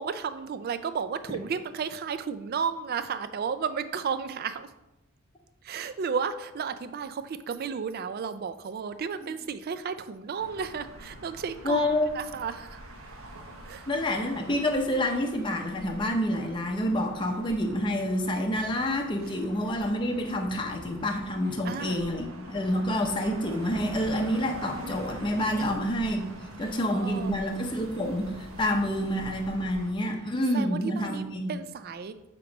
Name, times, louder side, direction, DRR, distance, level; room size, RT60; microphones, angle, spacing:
voice 1, 0.0-4.7 5.6-11.9 12.1-12.8 13.7-13.9 21.6-22.0 25.5-25.7 26.6-27.4 30.5-32.1, right 6 dB, 50° right, 11 dB, 0.3 m, -33 dB
sound 1, 10.4-29.9, right 1 dB, 85° right, 1.1 m, -44 dB
voice 2, 11.6-12.1 13.9-26.2 26.6-31.6, left 1 dB, 25° left, 2 dB, 0.6 m, -28 dB
8.5 x 3.0 x 5.0 m, 0.95 s
head